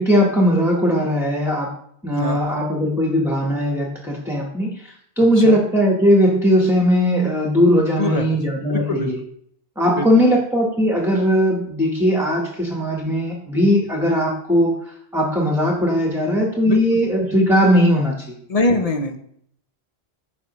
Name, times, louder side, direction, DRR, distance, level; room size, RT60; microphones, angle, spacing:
voice 1, 0.0-1.7 2.0-9.2 9.8-14.7 15.1-18.3, equal, ahead, -2 dB, 1.1 m, -18 dB
voice 2, 2.1-2.4 5.4-5.6 8.0-8.4 8.7-9.1 9.9-10.1 16.6-17.0 18.5-19.2, left 2 dB, 40° left, 5 dB, 0.7 m, -23 dB
9.9 x 5.9 x 3.0 m, 0.68 s
omnidirectional pair, 1.1 m